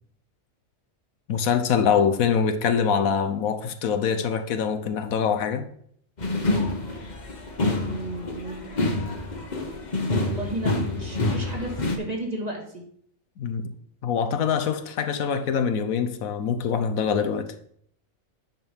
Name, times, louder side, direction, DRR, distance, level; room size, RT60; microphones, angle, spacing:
voice 1, 1.3-5.7 13.4-13.7 14.0-17.5, left 7 dB, 90° left, 1.3 m, -24 dB
sound 1, 6.2-12.0, left 2 dB, 35° left, 1.2 m, -27 dB
voice 2, 7.8-8.7 10.2-12.8, right 2 dB, 30° right, 2.1 m, -33 dB
9.6 x 5.3 x 5.5 m
omnidirectional pair, 1.4 m